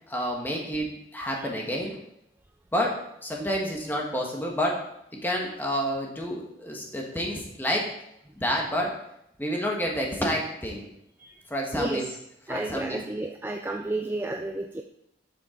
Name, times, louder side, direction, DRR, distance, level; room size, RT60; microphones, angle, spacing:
voice 1, 0.1-2.0 2.7-3.0 3.2-4.8 5.2-7.9 8.4-8.9 9.4-10.9 11.5-12.0 12.5-13.0, equal, 10° left, -1 dB, 1.4 m, -29 dB
voice 2, 11.7-12.1 12.5-14.8, right 2 dB, 10° right, 3 dB, 0.3 m, -31 dB
8.2 x 7.1 x 3.8 m, 0.77 s
head